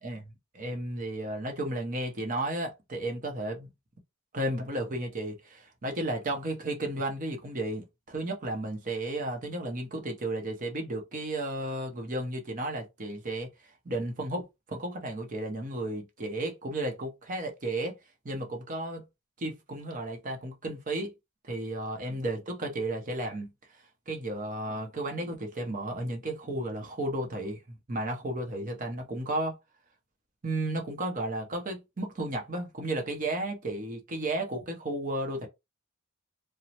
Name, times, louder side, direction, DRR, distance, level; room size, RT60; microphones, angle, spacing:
voice 1, 0.0-3.7 4.3-13.5 13.8-18.0 18.2-19.1 19.4-21.1 21.4-23.5 24.1-29.6 30.4-35.5, right 1 dB, 35° right, 0.7 m, -33 dB
3.0 x 2.0 x 2.8 m
head